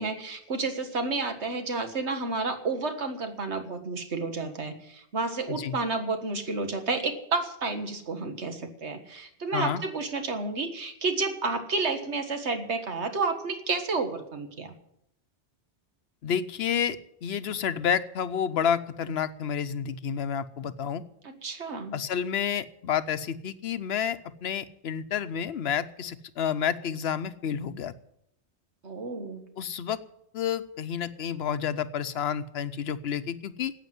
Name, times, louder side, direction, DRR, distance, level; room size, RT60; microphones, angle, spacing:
voice 1, 0.0-14.7 21.2-21.9 28.8-29.4, right 3 dB, 80° right, 7 dB, 1.9 m, -31 dB
voice 2, 16.2-21.0 21.9-27.9 29.6-30.0 30.3-33.7, left 8 dB, 70° left, 13 dB, 1.0 m, -30 dB
13.5 x 8.7 x 9.3 m, 0.75 s
omnidirectional pair, 1.1 m